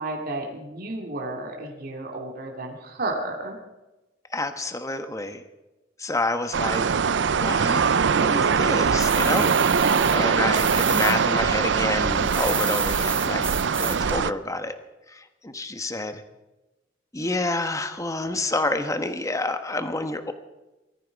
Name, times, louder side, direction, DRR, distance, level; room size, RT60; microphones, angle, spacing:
voice 1, 0.0-3.6 9.6-10.2, right 2 dB, 55° right, 0 dB, 2.7 m, -32 dB
voice 2, 4.3-5.4 6.0-6.8 7.3-9.7 10.1-13.4 13.8-14.8 15.1-16.2 17.1-20.3, left 2 dB, 15° left, 8 dB, 1.3 m, -28 dB
sound 1, 6.5-14.3, right 6 dB, 70° right, 0.5 m, -22 dB
sound 2, 9.0-11.2 11.4-14.1, right 4 dB, 10° right, 1.0 m, -30 dB
20.5 x 14.0 x 4.8 m, 1.0 s
head